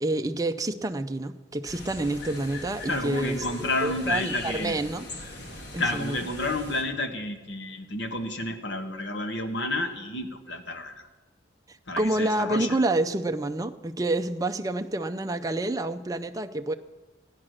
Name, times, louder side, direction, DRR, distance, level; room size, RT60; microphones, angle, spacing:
voice 1, 0.0-5.0 5.7-6.2 11.7-16.7, right 2 dB, 20° right, 7 dB, 0.5 m, -28 dB
sound 1, 1.6-6.8, left 2 dB, 65° left, 2.3 m, -40 dB
voice 2, 2.9-4.8 5.8-11.1 11.9-12.8, left 2 dB, 80° left, 6 dB, 1.5 m, -30 dB
15.0 x 9.8 x 6.4 m, 1.2 s
head